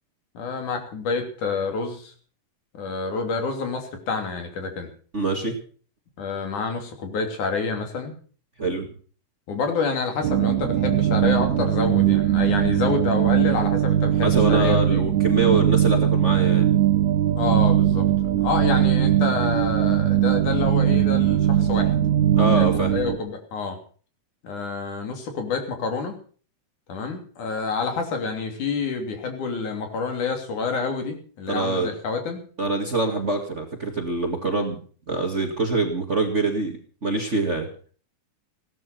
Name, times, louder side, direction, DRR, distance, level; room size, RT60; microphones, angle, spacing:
voice 1, 0.3-2.1 2.7-4.9 6.2-8.2 9.5-15.0 17.4-18.1 18.4-21.9 22.5-23.8 24.4-26.2 26.9-32.4, left 4 dB, 75° left, 5 dB, 4.5 m, -28 dB
voice 2, 5.1-5.6 8.6-8.9 14.2-16.7 22.3-22.9 31.5-31.9 32.6-34.8 35.1-37.7, right 2 dB, 25° right, 4 dB, 1.9 m, -24 dB
sound 1, 10.2-23.2, right 11 dB, 75° right, 2.7 m, -20 dB
17.0 x 12.5 x 5.9 m, 0.42 s
omnidirectional pair, 3.6 m